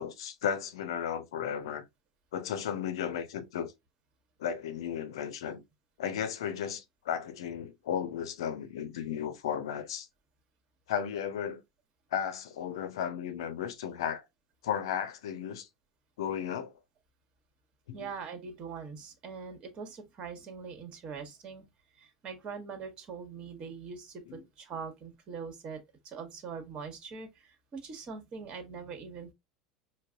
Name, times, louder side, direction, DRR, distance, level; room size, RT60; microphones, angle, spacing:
voice 1, 0.0-1.8 2.3-3.7 4.4-5.6 6.0-10.1 10.9-11.6 12.1-14.2 14.6-15.7 16.2-16.7 17.9-18.1 24.3-24.4, left 8 dB, 65° left, 0.6 m, -34 dB
voice 2, 17.9-21.6 21.9-24.2 24.6-29.3, right 5 dB, 40° right, 1.2 m, -42 dB
5.2 x 2.1 x 2.5 m
figure-of-eight pair, 80°, 3 cm